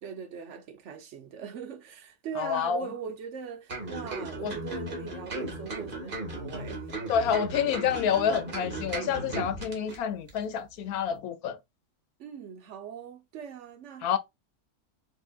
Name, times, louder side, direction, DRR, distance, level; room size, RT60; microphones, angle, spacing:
voice 1, 0.0-6.9 9.8-10.0 12.2-14.1, right 7 dB, 65° right, 0.8 m, -41 dB
voice 2, 2.4-2.8 4.4-4.5 7.1-11.6 14.0-14.2, left 8 dB, 80° left, 1.1 m, -28 dB
sound 1, 3.7-10.0 10.3-10.4, right 2 dB, 35° right, 1.5 m, -36 dB
5.3 x 2.8 x 2.3 m
omnidirectional pair, 1.6 m